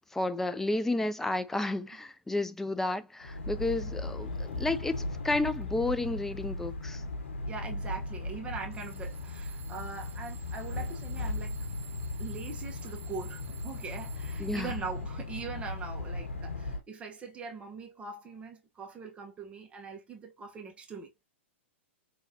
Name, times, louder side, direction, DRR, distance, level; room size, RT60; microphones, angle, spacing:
voice 1, 0.1-7.0 14.4-14.7, left 2 dB, 5° left, 0.4 m, -31 dB
sound 1, 3.2-16.8, left 2 dB, 75° left, 1.0 m, -37 dB
Alarm / Clock, 3.7-3.8 4.4-4.8 5.4-5.8 6.6-6.7 8.7-15.1, right 8 dB, 70° right, 0.7 m, -53 dB
voice 2, 7.4-11.6 12.2-21.2, right 5 dB, 15° right, 1.0 m, -42 dB
4.8 x 3.0 x 2.7 m
hypercardioid pair, 120°, 7 cm